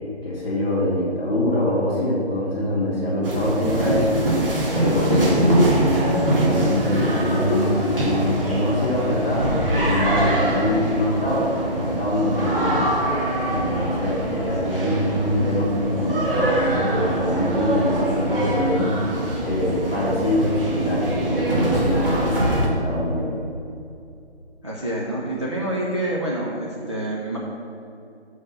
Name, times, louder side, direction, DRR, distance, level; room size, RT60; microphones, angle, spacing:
voice 1, 0.0-4.2 4.7-12.9 13.5-23.3, left 1 dB, 10° left, -12 dB, 1.4 m, -24 dB
sound 1, 3.2-22.7, right 1 dB, 55° right, 2.1 m, -23 dB
voice 2, 24.6-27.4, right 1 dB, 25° right, -5 dB, 0.7 m, -27 dB
6.9 x 6.3 x 5.6 m, 2.6 s
figure-of-eight pair, 170°, 34 cm